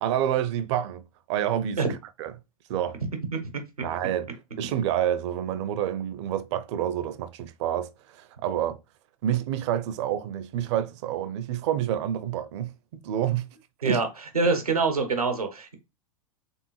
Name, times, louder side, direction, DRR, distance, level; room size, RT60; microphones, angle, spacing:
voice 1, 0.0-1.0 1.3-1.8 2.2-2.3 2.7-3.0 3.8-4.3 4.6-8.8 9.2-13.5 13.9-14.0, right 10 dB, 50° right, 0.6 m, -28 dB
voice 2, 14.3-15.7, right 4 dB, 90° right, 1.1 m, -24 dB
3.6 x 3.6 x 3.0 m
figure-of-eight pair, 95°, 18 cm